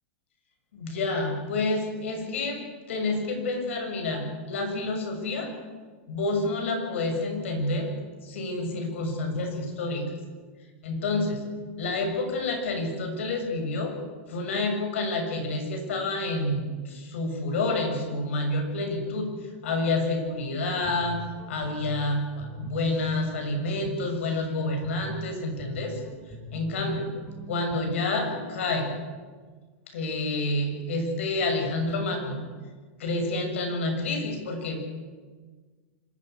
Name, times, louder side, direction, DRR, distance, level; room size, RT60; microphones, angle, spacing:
voice 1, 0.7-2.6 2.9-5.5 6.1-7.9 8.2-10.1 10.8-11.4 11.8-13.9 14.3-19.3 19.6-21.2 21.5-26.0 26.5-27.1 27.5-28.9 29.9-32.4 33.0-34.9, left 2 dB, 75° left, 4 dB, 7.0 m, -28 dB
Guitar, 20.8-28.6, right 1 dB, 15° left, 6.1 m, -42 dB
26.0 x 12.0 x 9.9 m, 1.4 s
supercardioid pair, 165°, 7 cm